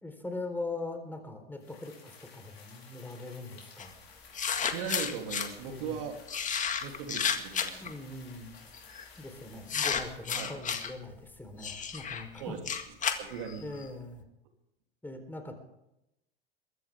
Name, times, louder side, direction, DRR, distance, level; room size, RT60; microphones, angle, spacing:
voice 1, 0.0-4.0 5.7-6.0 7.8-8.5 9.2-12.5 13.6-14.2 15.0-15.5, left 2 dB, 5° left, 5 dB, 4.0 m, -41 dB
sound 1, 1.6-10.6, left 5 dB, 90° left, 4.8 m, -55 dB
sound 2, 3.8-3.9 4.3-5.5 6.3-7.9 8.7-9.0 9.7-10.9 11.6-13.9, left 7 dB, 25° left, 1.9 m, -32 dB
voice 2, 4.7-6.2 6.8-7.8 10.3-10.5 12.4-12.6 13.2-13.7, right 7 dB, 65° right, 3 dB, 3.2 m, -38 dB
23.0 x 14.0 x 3.6 m, 0.85 s
hypercardioid pair, 100°, 30 cm